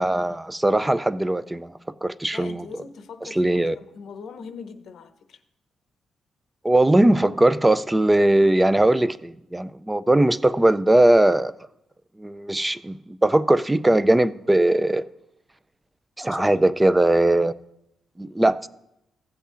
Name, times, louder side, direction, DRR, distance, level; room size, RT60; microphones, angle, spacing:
voice 1, 0.0-1.7 2.0-2.6 3.2-3.8 6.6-11.5 12.2-15.1 16.2-17.5 18.2-18.7, right 1 dB, 10° right, 0.3 m, -20 dB
voice 2, 2.3-5.4 16.3-16.6, left 5 dB, 70° left, 0.7 m, -41 dB
15.5 x 8.1 x 2.5 m
cardioid pair, 105°, 0 cm